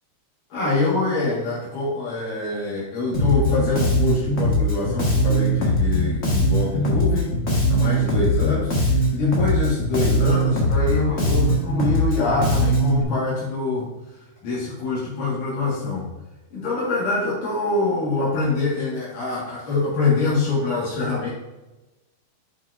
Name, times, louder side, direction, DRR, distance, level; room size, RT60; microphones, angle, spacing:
voice 1, 0.5-7.3 7.7-13.9 14.4-16.1 16.5-21.3, left 3 dB, 75° left, -7 dB, 3.4 m, -24 dB
Bass guitar, 3.1-13.0, equal, 40° left, 1.1 m, -20 dB
8.8 x 6.0 x 2.6 m, 1.0 s
omnidirectional pair, 3.8 m